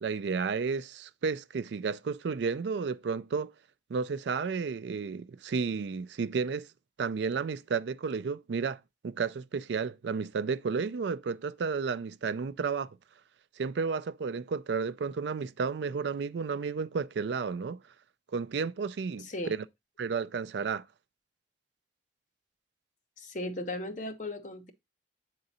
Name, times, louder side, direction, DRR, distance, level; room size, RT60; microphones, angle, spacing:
voice 1, 0.0-3.5 3.9-6.7 7.0-12.9 13.6-17.8 18.3-19.3 20.0-20.9, right 5 dB, 75° right, 0.4 m, -32 dB
voice 2, 19.2-19.6 23.2-24.7, left 1 dB, 45° left, 0.9 m, -37 dB
8.0 x 3.8 x 4.1 m
head